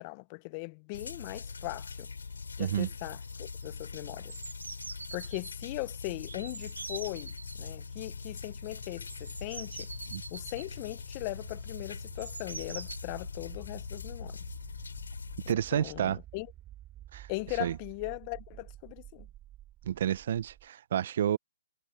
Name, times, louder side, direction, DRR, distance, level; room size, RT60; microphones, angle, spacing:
voice 1, 0.0-2.1 2.6-4.4 5.1-9.9 10.3-14.4 15.5-16.5 17.3-19.3, left 27 dB, 35° left, 0.7 m, -39 dB
sound 1, 0.9-15.5, left 5 dB, 85° left, 7.3 m, -42 dB
sound 2, 1.7-1.8 1.9-2.3 2.6-3.0 3.2-5.5 6.3-7.6 8.7-13.0, right 4 dB, 85° right, 1.5 m, -45 dB
voice 2, 2.6-2.9 10.1-10.2 15.5-16.2 17.1-17.3 17.6-17.8 19.9-21.4, right 10 dB, 55° right, 0.8 m, -30 dB
sound 3, 6.8-20.7, right 13 dB, 20° right, 3.5 m, -53 dB
hypercardioid pair, 135°, 0 cm